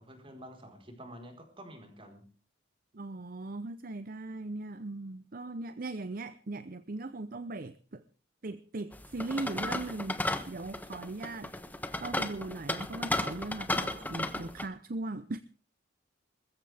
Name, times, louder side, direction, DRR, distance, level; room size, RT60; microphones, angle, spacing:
voice 1, 0.0-2.3, equal, 30° right, 4.4 m, -49 dB
voice 2, 2.9-8.0 8.4-11.6 12.0-15.4, right 2 dB, 50° right, 0.7 m, -39 dB
sound 1, 8.9-14.7, left 1 dB, 10° left, 1.2 m, -34 dB
21.5 x 15.0 x 3.5 m
head